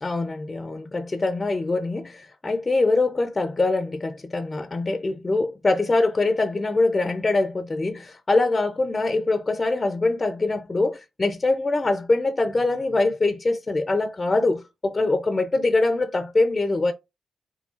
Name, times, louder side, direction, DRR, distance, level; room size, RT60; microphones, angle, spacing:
voice 1, 0.0-16.9, left 2 dB, 30° left, 0.4 m, -23 dB
3.1 x 2.3 x 2.3 m
supercardioid pair, 55°, 0 cm